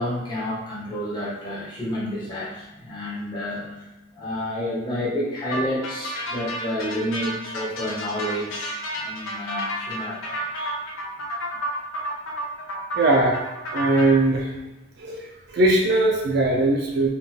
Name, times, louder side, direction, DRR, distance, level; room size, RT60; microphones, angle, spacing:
voice 1, 0.0-3.9 4.2-10.7, left 1 dB, 25° left, -10 dB, 0.7 m, -30 dB
sound 1, 5.5-14.1, equal, 80° left, 0.6 m, -31 dB
voice 2, 12.9-13.4 13.7-14.5 15.0-17.1, right 2 dB, 50° right, -2 dB, 0.3 m, -20 dB
3.4 x 2.3 x 2.7 m, 1.0 s
head